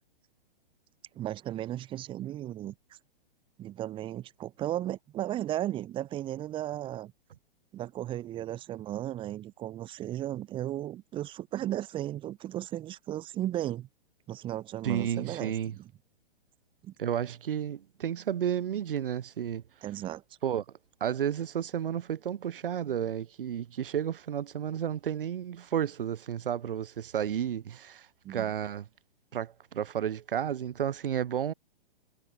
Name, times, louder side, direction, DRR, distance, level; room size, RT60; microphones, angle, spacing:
voice 1, 1.2-2.8 3.6-7.1 7.7-13.9 14.3-15.9 16.8-16.9 19.8-20.2 28.2-28.5, right 13 dB, 15° right, 3.5 m, -35 dB
voice 2, 14.8-15.7 17.0-19.6 20.4-20.6 21.0-28.9 29.3-31.5, right 9 dB, 65° right, 4.9 m, -32 dB
hypercardioid pair, 160°, 29 cm